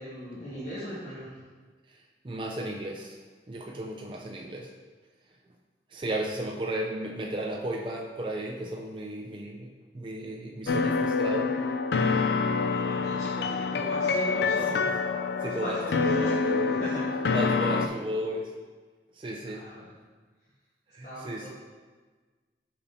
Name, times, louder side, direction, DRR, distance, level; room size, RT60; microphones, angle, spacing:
voice 1, 0.0-1.3 12.7-14.9 15.4-16.3 19.4-19.9 21.0-21.5, equal, 45° left, -11 dB, 1.4 m, -39 dB
voice 2, 1.9-3.2 3.5-4.7 5.9-11.6 15.4-16.8 17.3-18.5 19.1-19.7 20.9-21.5, right 1 dB, 30° right, 0 dB, 0.4 m, -34 dB
sound 1, 10.7-17.9, left 4 dB, 65° left, 0.3 m, -26 dB
6.9 x 5.4 x 2.7 m, 1.4 s
head